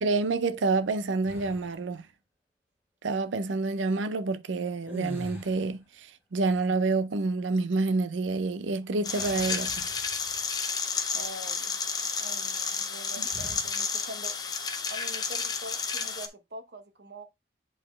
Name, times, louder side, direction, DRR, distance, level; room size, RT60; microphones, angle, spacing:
voice 1, 0.0-2.1 3.0-9.7 13.2-13.3, right 3 dB, 90° right, 0.5 m, -28 dB
sound 1, 1.2-1.9 4.8-5.9 9.1-10.6 11.0-11.2 13.3-13.8, left 1 dB, 10° right, 2.9 m, -43 dB
sound 2, 9.0-16.3, left 5 dB, 20° left, 0.6 m, -31 dB
voice 2, 11.1-11.9 12.2-14.3 14.9-17.3, right 1 dB, 65° right, 1.1 m, -44 dB
7.9 x 4.2 x 3.1 m
head